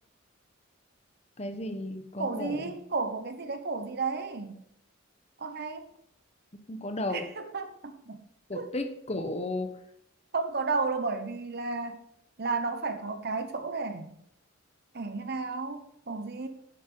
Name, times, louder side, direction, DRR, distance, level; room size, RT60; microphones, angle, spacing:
voice 1, 1.4-2.6 6.7-7.2 8.5-9.7, left 2 dB, 30° left, 1.1 m, -34 dB
voice 2, 2.2-4.6 5.4-5.9 7.1-8.2 8.5-8.7 10.3-12.0 12.4-14.1 14.9-16.5, right 4 dB, 50° right, 1.0 m, -33 dB
10.5 x 9.3 x 3.9 m
head